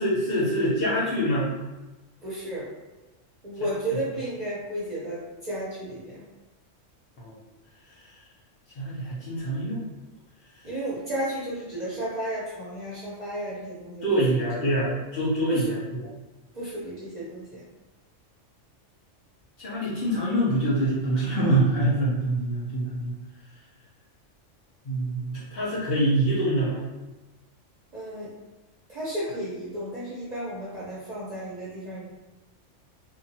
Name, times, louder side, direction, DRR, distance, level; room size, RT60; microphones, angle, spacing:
voice 1, 0.0-1.5 7.2-7.4 7.9-8.2 8.7-9.9 10.5-10.6 14.0-16.1 19.6-23.1 24.8-26.8, right 1 dB, 55° left, -7 dB, 1.0 m, -25 dB
voice 2, 2.2-2.7 3.4-6.2 10.6-14.0 15.5-15.6 16.5-17.7 27.9-28.3 28.9-32.1, right 1 dB, 40° right, -8 dB, 0.7 m, -33 dB
2.8 x 2.3 x 2.7 m, 1.1 s
omnidirectional pair, 1.3 m